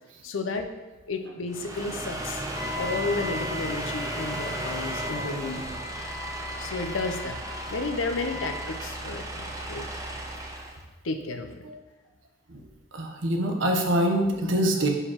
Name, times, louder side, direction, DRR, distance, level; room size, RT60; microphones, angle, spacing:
voice 1, 0.2-0.7 1.1-2.4 2.7-5.6 6.6-7.4 7.7-9.9 11.0-11.8, left 3 dB, 90° left, 6 dB, 0.6 m, -32 dB
sound 1, 1.5-10.8, right 1 dB, 20° right, 0.6 m, -35 dB
Wind instrument woodwind instrument, 2.5-8.8, left 2 dB, 30° left, 1.6 m, -38 dB
voice 2, 12.9-14.9, right 1 dB, 70° right, 2 dB, 0.9 m, -24 dB
6.5 x 4.9 x 2.9 m, 1.1 s
head